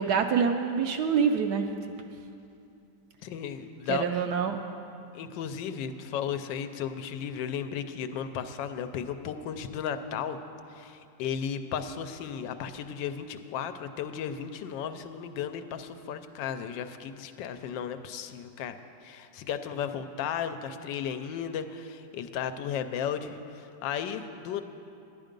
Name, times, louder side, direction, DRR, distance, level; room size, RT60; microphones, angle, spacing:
voice 1, 0.0-1.7 3.9-4.6, right 6 dB, 70° right, 6 dB, 1.0 m, -26 dB
voice 2, 3.2-4.0 5.1-10.4 10.7-24.6, left 8 dB, 80° left, 9 dB, 1.3 m, -35 dB
11.0 x 10.5 x 5.2 m, 2.7 s
omnidirectional pair, 2.0 m